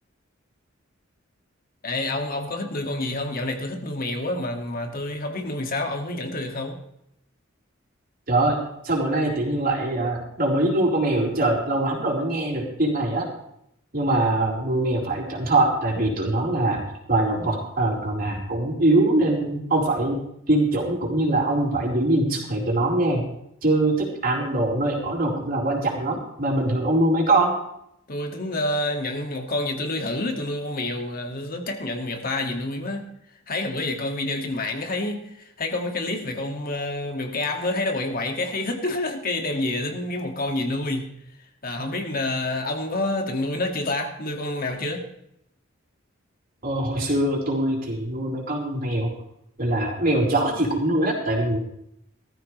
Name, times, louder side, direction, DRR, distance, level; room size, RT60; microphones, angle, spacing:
voice 1, 1.8-6.8 28.1-33.0 33.5-41.1 41.6-45.1, left 2 dB, 45° left, 2.2 m, -28 dB
voice 2, 8.3-8.6 8.8-13.3 13.9-20.2 20.5-23.2 23.6-27.6 46.6-49.1 49.6-51.6, right 2 dB, 45° right, 4.5 m, -23 dB
18.5 x 14.0 x 3.3 m
head